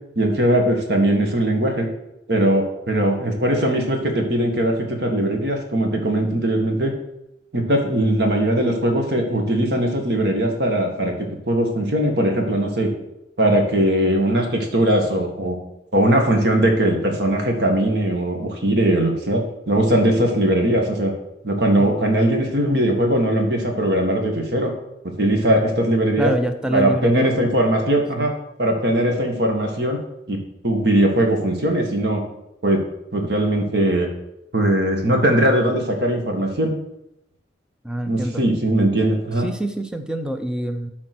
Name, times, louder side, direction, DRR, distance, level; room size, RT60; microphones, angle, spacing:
voice 1, 0.2-1.9 2.3-6.9 7.5-11.2 11.5-12.9 13.4-15.6 15.9-21.1 21.4-24.7 25.0-26.3 26.7-28.3 28.6-30.0 30.3-32.2 32.6-32.8 33.1-34.1 34.5-36.7 38.1-39.5, right 1 dB, 65° right, 2 dB, 1.8 m, -20 dB
voice 2, 26.2-27.8 28.2-28.3 37.8-38.4 39.4-40.9, right 1 dB, 5° right, 7 dB, 0.6 m, -26 dB
12.0 x 4.3 x 6.1 m, 0.84 s
head